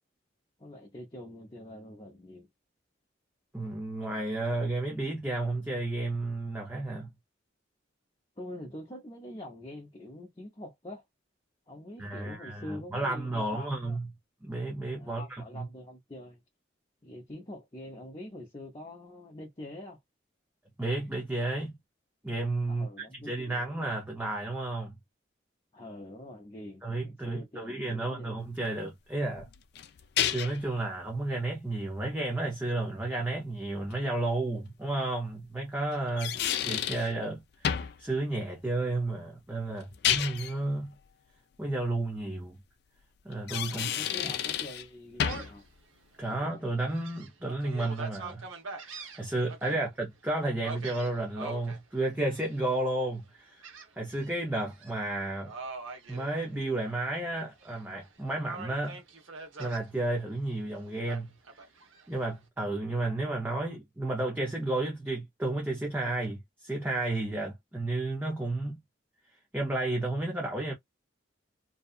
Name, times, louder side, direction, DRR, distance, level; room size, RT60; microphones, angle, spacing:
voice 1, 0.6-2.5 8.4-11.0 11.7-14.0 15.0-16.4 17.0-20.0 22.7-23.9 25.7-28.4 36.2-36.5 43.7-45.6 46.3-46.7 49.7-49.8, left 1 dB, 25° left, 0.7 m, -45 dB
voice 2, 3.5-7.1 12.0-14.0 14.4-15.7 20.8-21.7 22.2-24.9 26.8-29.5 30.2-36.3 36.6-40.9 41.6-42.5 43.2-43.9 44.2-44.3 46.2-48.4 48.8-53.6 54.0-55.5 56.1-59.0 59.6-61.3 62.1-68.8 69.5-70.7, right 2 dB, 10° right, 0.6 m, -32 dB
sound 1, 29.4-30.7 33.9-34.0 35.9-37.1 37.6-38.0 39.8-40.5 43.3-44.9 45.2-45.6, left 9 dB, 55° left, 0.4 m, -30 dB
Gull seagull, 45.2-45.7 46.2-46.3 46.8-49.7 50.6-51.8 52.3-52.8 53.6-54.3 54.7-54.9 55.5-57.0 57.4-58.1 58.4-59.8 61.1-62.1, right 3 dB, 85° right, 0.9 m, -43 dB
2.7 x 2.4 x 2.4 m
head